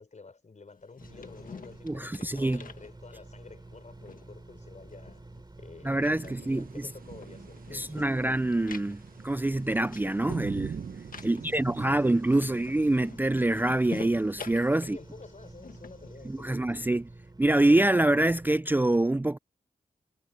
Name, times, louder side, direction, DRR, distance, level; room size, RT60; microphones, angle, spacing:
voice 1, 0.0-5.2 5.6-8.2 11.2-12.1 14.8-16.7, left 4 dB, 55° left, 5.2 m, -50 dB
sound 1, 0.8-3.4 3.8-5.6 5.9-16.6, left 5 dB, 70° left, 1.6 m, -48 dB
sound 2, 1.0-18.6, right 2 dB, 30° right, 4.6 m, -50 dB
voice 2, 1.8-2.6 5.9-6.6 7.7-10.8 11.2-15.0 16.4-17.0 17.4-19.4, right 2 dB, 15° right, 0.4 m, -25 dB
sound 3, 6.1-13.1, right 7 dB, 80° right, 1.0 m, -43 dB
wide cardioid pair, 75°, 15 cm